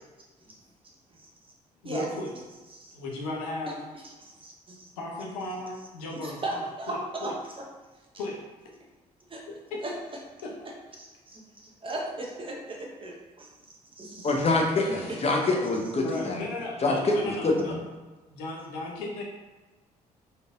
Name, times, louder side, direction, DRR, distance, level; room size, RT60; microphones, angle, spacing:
voice 1, 1.8-2.3 2.9-3.8 5.0-7.3 8.2-8.4 10.4-10.5 14.8-15.2 16.0-17.8 18.3-19.2, left 2 dB, 75° left, -2 dB, 0.7 m, -36 dB
voice 2, 4.4-4.9 6.2-7.6 9.3-9.4 9.8-9.9 11.0-13.5 14.0-14.3 15.1-15.2, right 2 dB, 25° right, -1 dB, 0.9 m, -36 dB
voice 3, 14.2-16.4 16.8-17.8, left 2 dB, 30° left, 0 dB, 0.8 m, -25 dB
4.2 x 3.3 x 2.5 m, 1.2 s
figure-of-eight pair, 45°, 20 cm